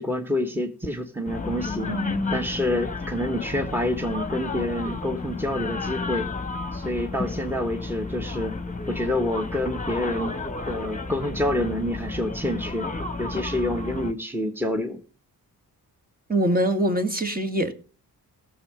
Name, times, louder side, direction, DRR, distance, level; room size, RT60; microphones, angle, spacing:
voice 1, 0.0-1.9 2.3-6.3 6.7-8.5 8.9-10.4 10.7-12.9 13.2-15.0, left 1 dB, 5° right, 1.6 m, -27 dB
sound 1, 1.3-14.1, left 3 dB, 20° left, 1.3 m, -32 dB
voice 2, 1.9-2.3 16.3-17.7, right 1 dB, 20° right, 2.1 m, -24 dB
16.5 x 7.4 x 5.2 m
cardioid pair, 65°, 39 cm